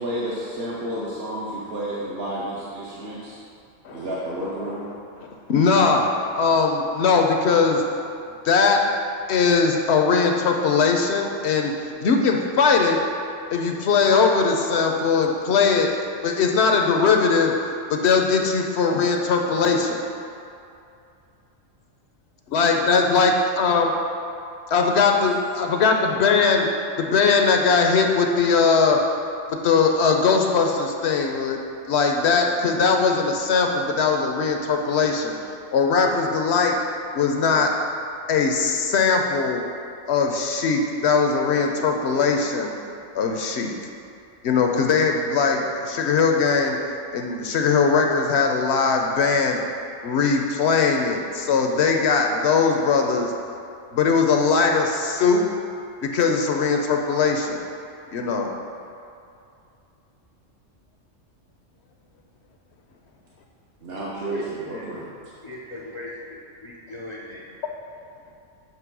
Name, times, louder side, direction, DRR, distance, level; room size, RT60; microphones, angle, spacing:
voice 1, 0.0-3.4 3.9-4.9 63.8-65.1, right 1 dB, 55° right, -7 dB, 1.0 m, -31 dB
voice 2, 5.5-6.1 6.4-7.8 8.4-8.8 9.3-11.7 12.0-13.0 13.5-16.0 16.2-17.5 17.9-20.0 22.5-23.9 24.7-26.7 27.0-29.0 29.5-31.6 31.9-35.4 35.7-36.8 37.1-37.7 38.3-39.6 40.1-42.7 43.1-43.7 44.4-46.8 47.1-49.6 50.0-53.3 53.9-55.4 56.0-57.6 58.1-58.5, left 5 dB, 65° left, 2 dB, 0.8 m, -20 dB
voice 3, 64.0-64.9 65.4-67.4, left 1 dB, 40° left, -3 dB, 0.4 m, -39 dB
7.5 x 3.2 x 6.0 m, 2.6 s
omnidirectional pair, 1.3 m